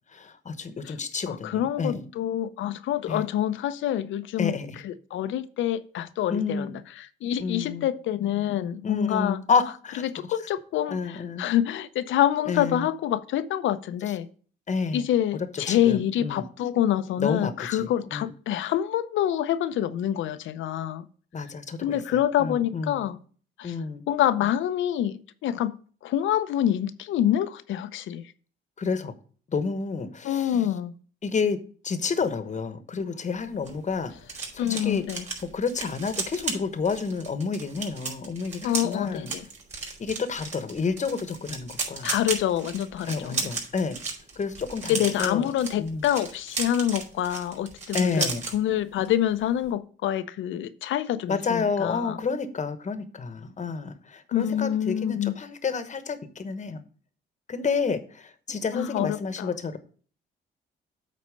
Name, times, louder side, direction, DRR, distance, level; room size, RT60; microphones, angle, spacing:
voice 1, 0.1-2.1 3.1-3.2 4.4-4.8 6.3-6.7 7.4-7.9 8.8-10.0 10.9-11.4 12.5-12.9 14.7-15.0 15.5-16.5 17.2-18.3 21.3-23.0 23.6-24.0 28.8-29.1 29.5-30.6 31.2-31.6 31.8-34.1 34.5-35.0 35.5-39.3 40.0-42.1 43.1-44.0 44.4-45.5 45.8-46.0 47.9-48.4 51.3-56.8 57.5-59.8, left 5 dB, 35° left, 1.1 m, -30 dB
voice 2, 1.3-4.6 4.8-6.7 7.0-9.4 10.0-14.3 14.9-21.1 21.8-23.2 23.6-23.7 24.1-25.8 26.0-28.2 30.2-30.9 34.6-35.3 38.6-39.4 42.0-43.5 44.9-52.2 54.3-55.4 58.7-59.5, left 11 dB, 80° left, 0.6 m, -26 dB
sound 1, 33.4-48.6 48.9-49.2 49.4-49.7, right 4 dB, 35° right, 4.1 m, -35 dB
8.5 x 4.2 x 6.5 m
cardioid pair, 90°, 20 cm